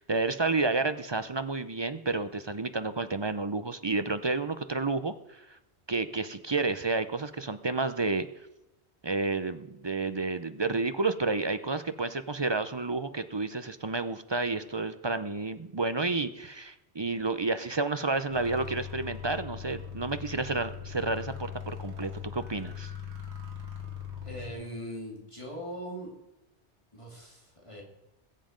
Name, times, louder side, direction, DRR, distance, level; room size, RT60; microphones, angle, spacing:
voice 1, 0.0-5.4 5.9-8.3 9.0-22.9, right 3 dB, 30° right, 11 dB, 0.5 m, -30 dB
sound 1, 18.3-24.5, left 8 dB, 75° right, 2.7 m, -40 dB
voice 2, 24.2-26.1 26.9-27.8, equal, 25° left, -2 dB, 2.8 m, -40 dB
21.0 x 7.5 x 5.1 m, 0.92 s
omnidirectional pair, 1.1 m